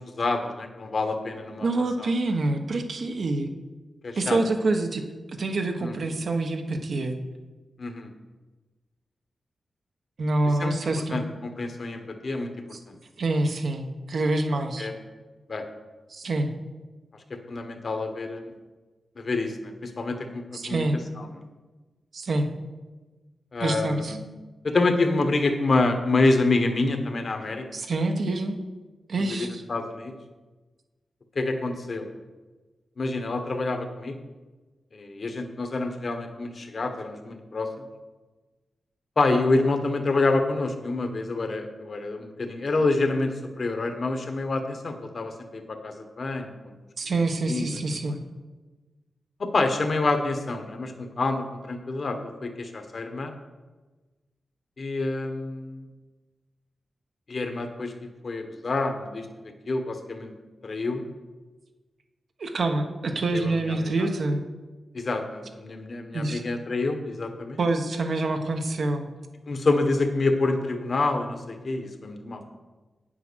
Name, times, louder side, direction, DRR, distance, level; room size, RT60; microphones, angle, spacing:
voice 1, 0.0-1.7 2.0-2.1 4.0-4.4 5.8-5.9 7.8-8.1 10.6-10.8 11.1-12.9 14.8-14.9 15.5-15.6 17.5-18.5 19.2-20.8 21.2-21.3 23.5-24.2 24.6-27.7 29.2-30.1 31.3-32.1 33.0-34.1 34.9-37.8 39.2-46.7 47.1-47.8 49.4-53.3 54.8-55.8 57.3-57.9 58.2-60.3 60.6-61.0 63.3-64.1 64.9-67.6 69.5-72.4, left 3 dB, 55° left, 6 dB, 1.5 m, -27 dB
voice 2, 1.6-3.5 4.2-7.2 10.2-11.2 12.7-12.8 13.2-14.9 16.1-16.5 20.5-21.0 22.1-22.5 23.6-24.2 27.7-28.6 29.1-29.6 47.0-48.2 62.4-64.4 66.1-66.4 67.6-69.1, right 2 dB, 65° right, 4 dB, 1.3 m, -26 dB
9.2 x 8.1 x 6.4 m, 1.2 s
cardioid pair, 70°, 0 cm